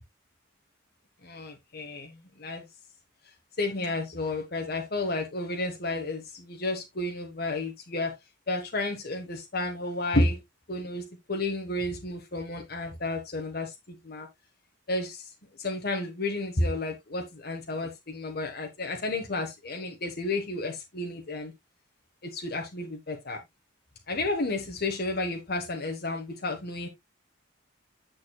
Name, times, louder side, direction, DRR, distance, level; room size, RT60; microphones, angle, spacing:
voice 1, 1.2-2.7 3.6-8.2 8.5-10.4 10.7-14.3 14.9-15.2 15.6-21.5 22.2-23.4 24.1-26.9, left 2 dB, 50° left, 1.3 m, -31 dB
9.5 x 6.5 x 2.2 m
head